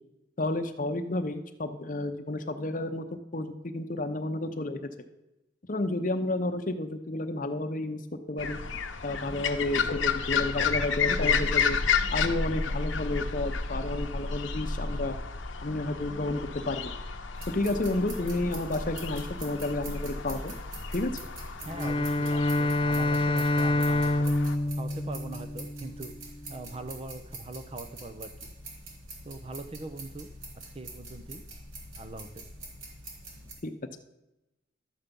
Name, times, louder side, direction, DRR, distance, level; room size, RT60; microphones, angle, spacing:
voice 1, 0.4-3.0 3.3-4.8 5.7-8.0 8.3-8.6 9.0-11.8 12.1-15.2 15.6-16.9 17.5-20.5 20.9-21.2 33.6-33.7, left 2 dB, 40° left, 7 dB, 0.8 m, -31 dB
sound 1, 8.4-24.6, left 5 dB, 80° left, 0.8 m, -32 dB
sound 2, 17.3-33.5, right 2 dB, 90° right, 3.2 m, -45 dB
voice 2, 21.6-24.3 24.8-26.1 26.5-28.3 29.2-30.3 30.7-31.4 32.0-32.4, right 2 dB, 30° right, 9 dB, 0.6 m, -41 dB
Bowed string instrument, 21.7-26.1, left 1 dB, 25° left, 0.4 m, -27 dB
12.5 x 7.2 x 5.3 m, 0.94 s
head